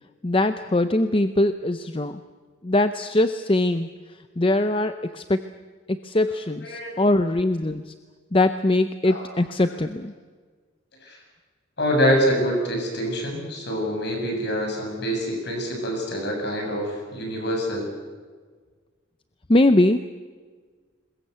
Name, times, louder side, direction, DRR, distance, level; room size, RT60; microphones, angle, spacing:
voice 1, 0.2-2.2 2.6-3.9 4.4-5.4 5.9-7.9 8.3-10.1 19.5-20.0, left 1 dB, 25° left, 10 dB, 0.6 m, -21 dB
voice 2, 6.6-7.0 9.1-9.3 11.0-11.2 11.8-17.9, equal, 55° left, 1 dB, 7.5 m, -25 dB
22.0 x 21.0 x 8.1 m, 1.5 s
head